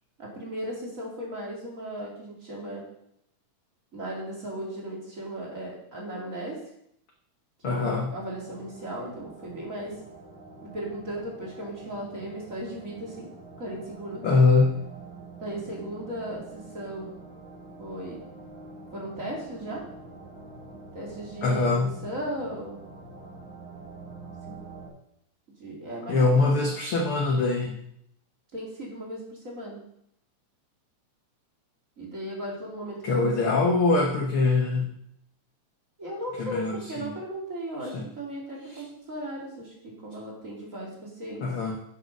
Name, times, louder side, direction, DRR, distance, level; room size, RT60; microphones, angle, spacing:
voice 1, 0.2-2.8 3.9-6.6 7.6-10.0 10.6-13.3 13.6-14.2 15.4-17.1 17.8-18.2 18.9-19.8 20.9-22.8 24.5-24.6 25.6-26.5 28.5-29.8 32.0-33.3 36.0-41.4, right 1 dB, 25° right, -3 dB, 2.6 m, -36 dB
voice 2, 7.6-8.1 14.2-14.9 21.4-22.0 26.1-27.8 33.0-35.0 36.4-36.8 37.9-38.1 38.7-38.8 41.4-41.8, left 3 dB, 70° left, 3 dB, 1.2 m, -23 dB
sound 1, 7.9-24.9, right 3 dB, 65° right, 4.3 m, -46 dB
10.0 x 8.1 x 5.3 m, 0.73 s
omnidirectional pair, 3.8 m